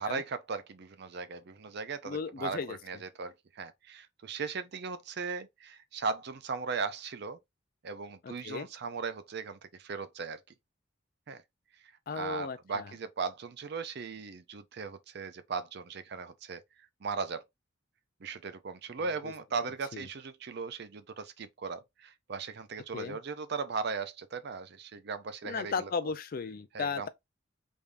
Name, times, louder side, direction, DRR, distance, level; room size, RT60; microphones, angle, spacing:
voice 1, 0.0-7.4 7.8-10.4 11.3-11.4 12.1-16.6 17.0-17.4 18.2-25.9 26.7-27.1, right 5 dB, 55° right, 0.5 m, -38 dB
voice 2, 2.0-2.8 8.2-8.7 12.1-12.9 19.2-19.3 19.9-20.1 22.9-23.2 25.4-27.1, left 5 dB, 45° left, 0.4 m, -35 dB
3.5 x 3.4 x 2.5 m
head